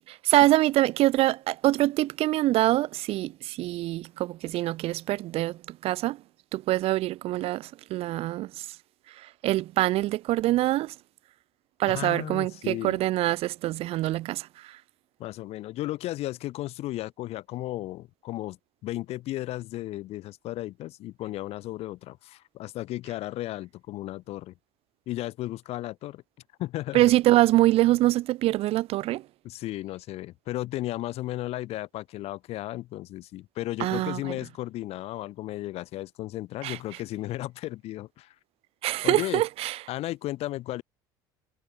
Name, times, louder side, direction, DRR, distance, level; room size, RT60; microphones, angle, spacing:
voice 1, 0.2-6.2 6.5-8.7 9.2-10.9 11.8-14.8 26.9-29.2 33.8-34.3 36.6-36.8 38.8-39.8, right 16 dB, 55° right, 0.4 m, -24 dB
voice 2, 11.9-13.0 15.2-18.6 18.8-24.5 25.1-26.2 26.6-27.1 29.4-38.3 39.0-39.4 39.9-40.8, left 16 dB, 55° left, 0.7 m, -34 dB
hypercardioid pair, 75°, 12 cm